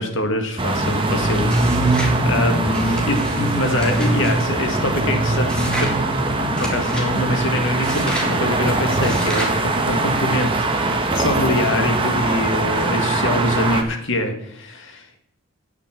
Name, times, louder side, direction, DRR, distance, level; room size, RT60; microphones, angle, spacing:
voice 1, 0.0-15.2, left 1 dB, 60° left, 5 dB, 1.9 m, -24 dB
sound 1, 0.6-13.8, right 2 dB, 25° right, 1.2 m, -21 dB
sound 2, 1.5-2.2 2.7-4.3 5.5-6.0 6.6-7.1 7.8-8.3 9.0-9.6, equal, 5° left, 2.1 m, -31 dB
9.8 x 5.9 x 7.5 m, 0.77 s
head